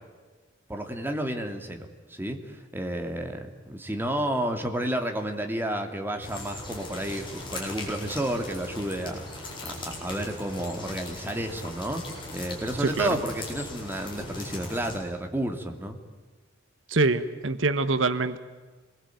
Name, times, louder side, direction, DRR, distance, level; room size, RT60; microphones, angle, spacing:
voice 1, 0.7-12.0 12.3-16.0, right 1 dB, 10° right, 4 dB, 2.6 m, -31 dB
sound 1, 6.2-15.0, left 2 dB, 25° left, 7.8 m, -39 dB
voice 2, 16.9-18.4, right 3 dB, 80° right, 12 dB, 1.3 m, -24 dB
27.5 x 21.5 x 9.3 m, 1.3 s
head